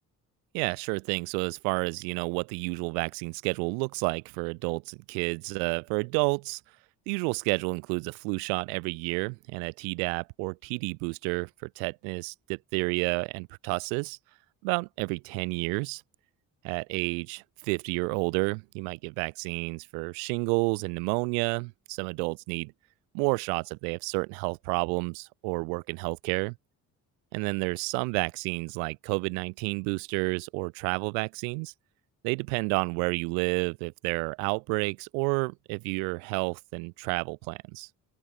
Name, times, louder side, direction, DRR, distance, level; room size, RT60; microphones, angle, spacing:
voice 1, 0.5-6.6 7.1-14.2 14.6-16.0 16.6-22.7 23.1-26.6 27.3-31.7 32.2-37.9, right 40 dB or more, 70° right, 0.5 m, -30 dB
open air
figure-of-eight pair, 45°, 50 cm